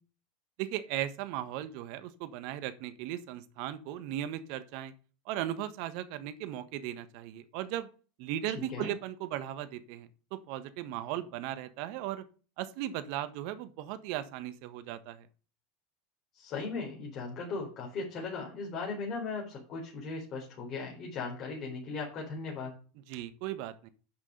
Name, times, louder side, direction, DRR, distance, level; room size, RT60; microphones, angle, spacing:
voice 1, 0.6-4.9 5.2-7.9 8.2-12.2 12.6-15.3 23.1-23.9, right 12 dB, 65° right, 13 dB, 1.3 m, -37 dB
voice 2, 8.5-8.9 16.3-22.8, left 4 dB, 50° left, -2 dB, 4.4 m, -38 dB
10.5 x 6.3 x 5.1 m, 0.37 s
hypercardioid pair, 90°, 0 cm